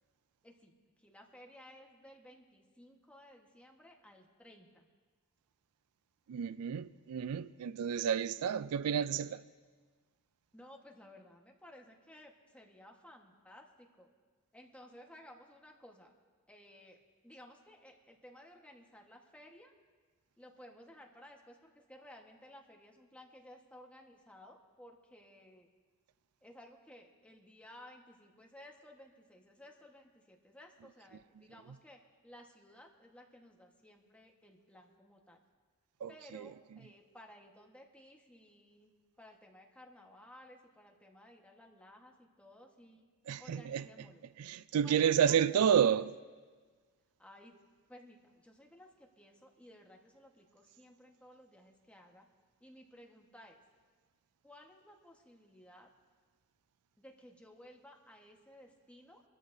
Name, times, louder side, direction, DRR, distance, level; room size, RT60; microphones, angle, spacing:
voice 1, 0.4-4.9 8.4-8.5 10.5-14.1 14.5-16.1 16.5-19.7 20.4-25.7 26.4-35.4 36.1-38.9 39.2-43.1 43.4-44.2 44.8-45.7 47.2-47.6 47.9-52.3 52.6-53.6 54.4-55.9 57.0-59.2, left 1 dB, 5° left, 1.3 m, -57 dB
voice 2, 6.3-9.4 36.0-36.5 43.3-43.9 44.4-46.1, right 8 dB, 80° right, 0.4 m, -30 dB
24.5 x 14.0 x 2.7 m
head